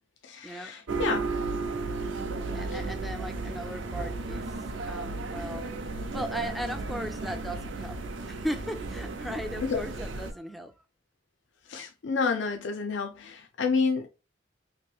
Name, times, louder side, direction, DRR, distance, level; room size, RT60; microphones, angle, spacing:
voice 1, 0.2-1.2 2.7-2.8 9.7-9.8 11.7-14.1, left 5 dB, 75° left, 0.4 m, -29 dB
sound 1, 0.9-10.3, right 3 dB, 80° right, 0.5 m, -34 dB
voice 2, 2.3-4.6 4.9-5.7 6.1-8.0 8.3-10.7, equal, ahead, 0.3 m, -37 dB
2.9 x 2.5 x 3.2 m
head